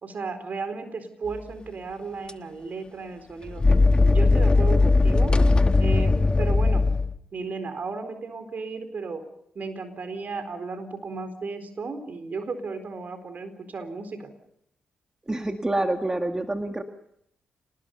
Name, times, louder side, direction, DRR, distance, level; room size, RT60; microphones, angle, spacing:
voice 1, 0.0-3.6 4.0-5.3 5.8-6.9 7.3-9.2 9.5-14.3, right 4 dB, 55° right, 9 dB, 4.2 m, -34 dB
sound 1, 2.3-2.4 3.5-7.2, left 3 dB, 30° left, 1.3 m, -19 dB
voice 2, 15.3-16.8, right 2 dB, 20° right, 5 dB, 2.0 m, -27 dB
27.5 x 20.0 x 5.4 m, 0.74 s
supercardioid pair, 45°, 3 cm